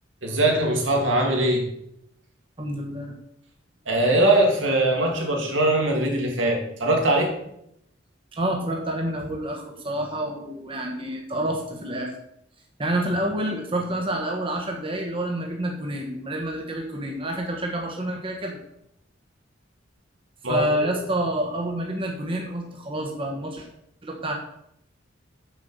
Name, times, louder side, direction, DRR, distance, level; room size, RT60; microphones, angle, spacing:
voice 1, 0.2-1.7 3.9-7.3 20.4-20.9, right 1 dB, 80° right, 0 dB, 2.4 m, -21 dB
voice 2, 2.6-3.1 8.3-12.1 12.8-18.6 20.5-23.7 24.0-24.3, right 1 dB, 30° right, 1 dB, 1.2 m, -28 dB
7.4 x 5.8 x 6.8 m, 0.77 s
head